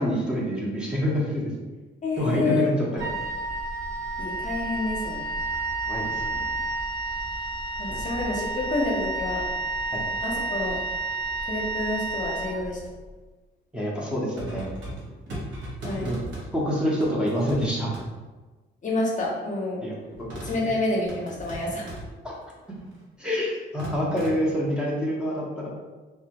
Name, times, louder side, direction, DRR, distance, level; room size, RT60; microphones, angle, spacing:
voice 1, 0.0-1.5 2.2-3.1 5.8-6.3 7.9-8.0 9.9-10.0 13.7-14.7 16.0-16.2 16.5-17.9 19.8-20.0 20.6-20.7 22.2-22.3 23.2-25.7, equal, 5° right, -6 dB, 0.6 m, -26 dB
voice 2, 2.0-2.7 4.2-5.2 7.8-9.4 10.2-10.8 11.5-12.8 15.8-16.1 18.8-19.8 20.4-21.9, left 2 dB, 40° left, -3 dB, 0.6 m, -28 dB
Wind instrument woodwind instrument, 3.0-13.1, right 3 dB, 40° right, 1.2 m, -30 dB
sound 1, 14.3-16.5 17.0-17.7 17.9-18.0 20.1-20.6 21.1-22.1 22.7-23.0 23.8-24.4, right 1 dB, 75° right, 0.8 m, -37 dB
2.2 x 2.1 x 2.8 m, 1.2 s
cardioid pair, 90°, 20 cm